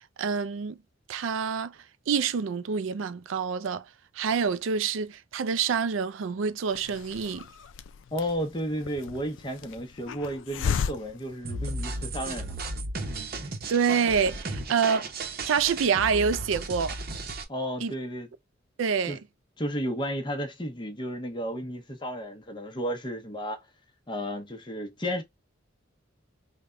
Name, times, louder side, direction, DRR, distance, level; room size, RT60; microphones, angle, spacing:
voice 1, 0.2-0.8 1.1-1.7 2.1-3.8 4.2-7.4 13.7-15.1 15.5-17.0 17.8-17.9 18.8-19.2, right 6 dB, 80° right, 0.4 m, -27 dB
Hiss, 6.7-12.2, left 7 dB, 75° left, 0.4 m, -35 dB
voice 2, 8.1-12.6 17.5-18.3 19.1-19.2 19.6-23.6 24.1-25.2, equal, 25° left, 0.8 m, -33 dB
sound 1, 11.4-17.4, right 2 dB, 50° right, 0.8 m, -35 dB
3.4 x 2.2 x 3.7 m
head